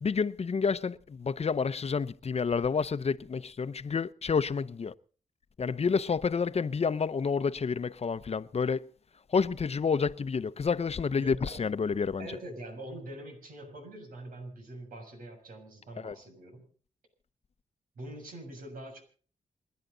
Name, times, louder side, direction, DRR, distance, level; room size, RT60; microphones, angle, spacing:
voice 1, 0.0-4.9 5.6-8.9 9.3-12.3 16.0-16.1, left 5 dB, 45° left, 0.8 m, -29 dB
voice 2, 11.2-16.7 18.0-19.0, right 1 dB, 85° right, 6.9 m, -44 dB
28.5 x 10.5 x 4.0 m
cardioid pair, 65°, 14 cm